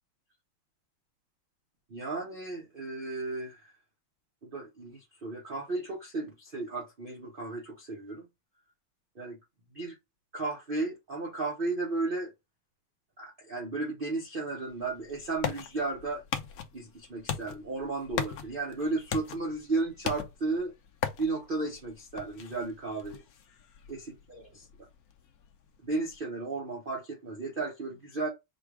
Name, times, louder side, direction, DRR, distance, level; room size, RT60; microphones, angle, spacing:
voice 1, 1.9-3.7 4.4-8.3 9.2-9.4 9.7-10.0 10.3-12.3 13.2-16.2 16.7-20.7 21.2-23.2 23.9-24.9 25.8-28.3, right 3 dB, 60° right, 0.5 m, -34 dB
sound 1, 14.7-26.2, left 8 dB, 70° left, 0.9 m, -40 dB
4.4 x 2.3 x 4.7 m
omnidirectional pair, 2.3 m